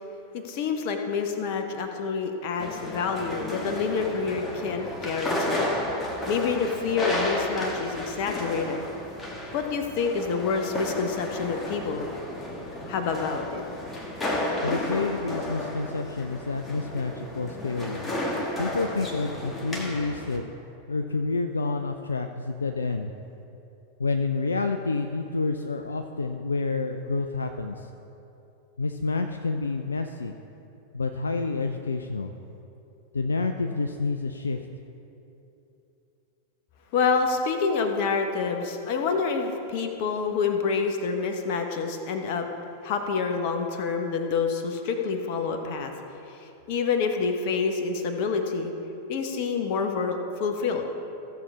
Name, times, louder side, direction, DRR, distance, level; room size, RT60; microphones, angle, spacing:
voice 1, 0.3-5.7 6.3-8.8 9.5-12.1 12.9-13.6 36.9-42.5 42.8-45.9 46.3-48.7 49.1-50.9, left 5 dB, 45° left, 5 dB, 1.0 m, -27 dB
sound 1, 2.6-20.4, left 1 dB, 15° left, 1.5 m, -33 dB
voice 2, 14.6-18.0 18.6-20.4 20.9-23.1 24.0-27.9 28.8-30.4 30.9-32.3 33.1-34.7, left 3 dB, 75° left, 5 dB, 0.4 m, -29 dB
15.0 x 6.9 x 3.6 m, 2.9 s
figure-of-eight pair, 90°, 0 cm